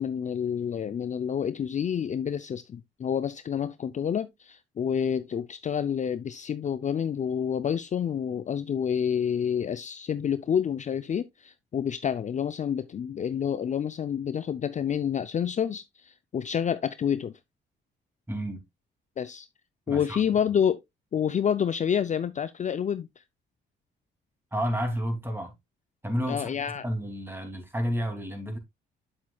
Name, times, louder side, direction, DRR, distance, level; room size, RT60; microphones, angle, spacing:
voice 1, 0.0-17.4 19.2-19.5 19.9-20.8 21.1-23.2 26.3-26.8, left 8 dB, 40° left, 0.5 m, -28 dB
voice 2, 18.3-18.6 19.9-20.2 24.5-25.5 26.0-28.6, equal, 10° right, 2.6 m, -31 dB
8.4 x 7.3 x 2.3 m
cardioid pair, 90°, 20 cm